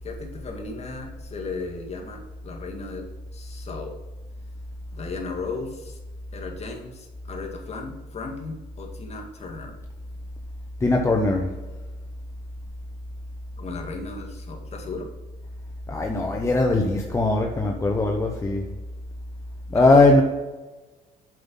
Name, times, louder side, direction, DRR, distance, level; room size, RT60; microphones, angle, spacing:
voice 1, 0.0-3.1 3.3-4.0 4.9-6.0 6.3-9.8 13.6-15.1 19.7-20.2, left 4 dB, 40° left, 1 dB, 2.0 m, -35 dB
voice 2, 10.8-11.5 15.9-18.7 19.7-20.2, left 2 dB, 15° left, 1 dB, 0.8 m, -20 dB
7.7 x 5.5 x 5.5 m, 1.2 s
cardioid pair, 110°, 17 cm